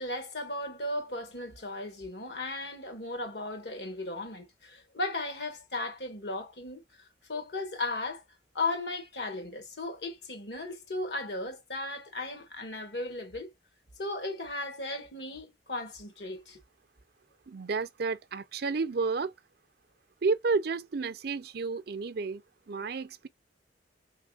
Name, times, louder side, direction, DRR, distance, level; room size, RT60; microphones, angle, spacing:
voice 1, 0.0-6.8 7.3-8.2 8.5-13.5 14.0-16.6, left 2 dB, 65° left, 1.6 m, -36 dB
voice 2, 17.5-19.3 20.2-23.3, right 4 dB, 60° right, 0.5 m, -31 dB
4.1 x 3.4 x 2.4 m
head